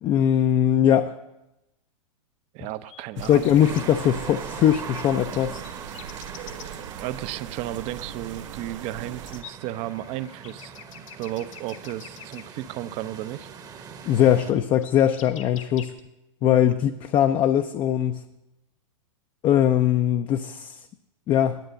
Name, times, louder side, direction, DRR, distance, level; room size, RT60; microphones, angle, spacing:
voice 1, 0.0-1.1 3.3-5.6 14.0-15.9 16.4-18.2 19.4-20.9 21.3-21.6, left 10 dB, 30° left, 8 dB, 0.4 m, -21 dB
voice 2, 2.5-3.4 7.0-10.8 11.2-13.5 16.4-16.6, right 14 dB, 40° right, 15 dB, 0.5 m, -34 dB
sound 1, 2.6-3.8 5.4-6.8 8.8-8.9 9.3-12.4 14.3-14.4 14.7-16.0, left 9 dB, 70° left, 1.2 m, -44 dB
sound 2, 3.2-9.4, right 10 dB, 65° right, 0.9 m, -40 dB
sound 3, 3.6-14.5, right 6 dB, 20° right, 0.9 m, -41 dB
10.5 x 8.7 x 6.4 m, 0.94 s
hypercardioid pair, 115°, 17 cm